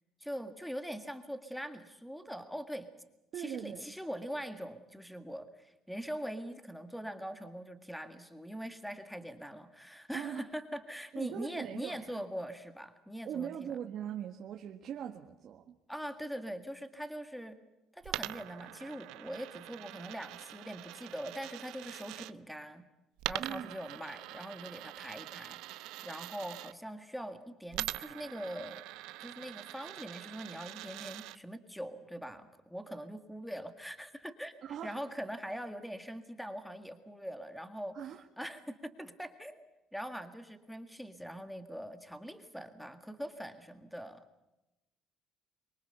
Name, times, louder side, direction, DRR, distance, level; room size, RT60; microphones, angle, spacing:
voice 1, 0.2-2.9 3.4-13.8 15.9-17.6 17.9-22.9 23.3-28.8 29.2-39.6 39.9-44.2, equal, ahead, 8 dB, 1.8 m, -42 dB
voice 2, 3.3-3.9 10.1-10.5 11.1-12.2 13.2-15.8 23.4-23.7 34.6-35.0 37.9-38.2, right 9 dB, 55° right, 2 dB, 1.8 m, -40 dB
Coin (dropping), 18.0-22.3 23.2-26.7 27.7-31.4, right 17 dB, 85° right, 0.8 m, -43 dB
26.0 x 23.0 x 6.9 m, 0.97 s
cardioid pair, 120°, 0 cm